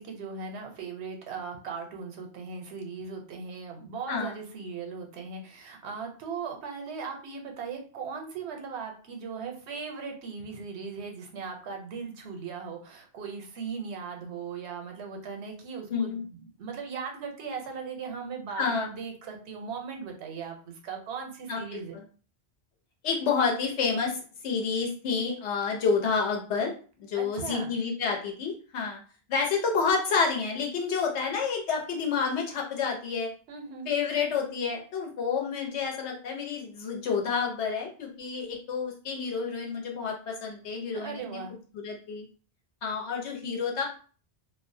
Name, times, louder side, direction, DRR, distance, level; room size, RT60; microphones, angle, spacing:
voice 1, 0.0-21.9 27.1-27.7 33.5-33.9 40.9-41.6, right 5 dB, 80° right, 3 dB, 0.9 m, -38 dB
voice 2, 15.9-16.2 18.6-18.9 21.5-22.0 23.0-26.7 27.0-29.0 29.3-33.3 33.9-41.4 41.7-42.3 42.8-43.8, left 5 dB, 85° left, 0 dB, 1.0 m, -29 dB
2.3 x 2.1 x 2.5 m, 0.40 s
omnidirectional pair, 1.1 m